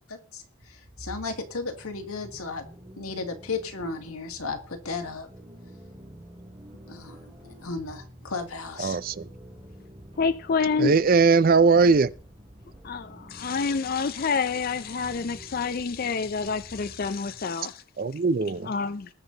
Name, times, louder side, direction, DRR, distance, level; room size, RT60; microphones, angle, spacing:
voice 1, 0.1-0.4 0.7-2.7 3.0-5.3 6.9-9.0, left 4 dB, 90° left, 1.9 m, -34 dB
sound 1, 0.6-17.5, right 1 dB, 25° right, 2.4 m, -48 dB
voice 2, 8.8-9.2 10.8-12.1 18.0-18.7, right 4 dB, 40° right, 0.4 m, -20 dB
voice 3, 10.2-11.0 12.8-17.8 18.6-19.1, left 5 dB, 45° left, 0.4 m, -28 dB
19.5 x 7.1 x 3.9 m
head